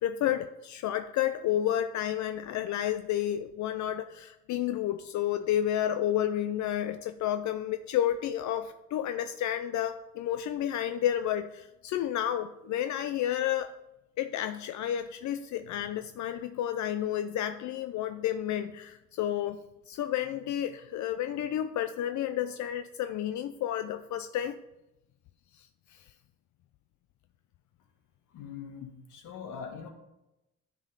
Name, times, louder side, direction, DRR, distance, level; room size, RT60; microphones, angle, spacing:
voice 1, 0.0-13.7 14.2-24.6 25.6-25.7 25.9-26.0, left 11 dB, 70° left, 9 dB, 0.5 m, -31 dB
voice 2, 28.3-29.9, left 6 dB, 85° left, 3 dB, 1.4 m, -42 dB
10.5 x 3.7 x 5.3 m, 0.94 s
cardioid pair, 90°, 30 cm